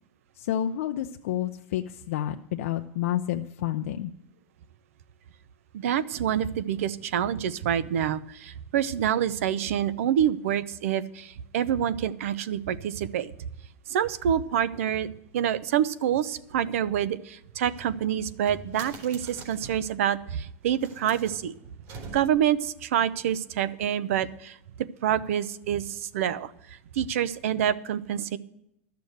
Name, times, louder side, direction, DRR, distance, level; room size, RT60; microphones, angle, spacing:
voice 1, 0.4-4.1, left 11 dB, 80° left, 5 dB, 0.6 m, -29 dB
voice 2, 5.7-13.3 13.9-21.5 22.1-24.6 25.0-26.5 26.9-28.4, right 10 dB, 85° right, 17 dB, 0.7 m, -27 dB
sound 1, 17.6-20.0 20.6-22.6, right 3 dB, 50° right, 3.8 m, -45 dB
12.5 x 6.9 x 7.9 m, 0.81 s
supercardioid pair, 150°, 7 cm